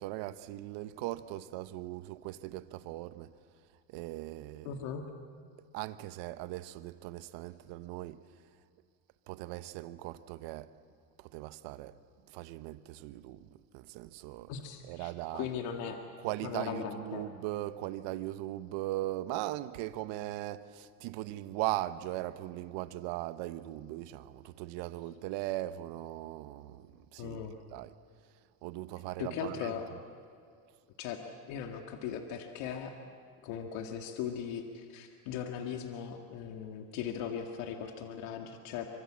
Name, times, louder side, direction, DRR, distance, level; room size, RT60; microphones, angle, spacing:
voice 1, 0.0-3.3 3.9-4.7 5.7-8.2 9.3-10.7 11.2-11.9 12.3-14.5 14.9-15.5 16.2-27.4 27.7-27.9 28.6-29.7, right 16 dB, 80° right, 1.1 m, -39 dB
voice 2, 4.7-5.0 14.5-16.0 16.4-17.3 27.2-27.5 29.2-29.9 31.0-31.2 31.5-33.0 33.4-38.9, left 8 dB, 85° left, 2.1 m, -38 dB
25.0 x 25.0 x 7.5 m
cardioid pair, 110°, 42 cm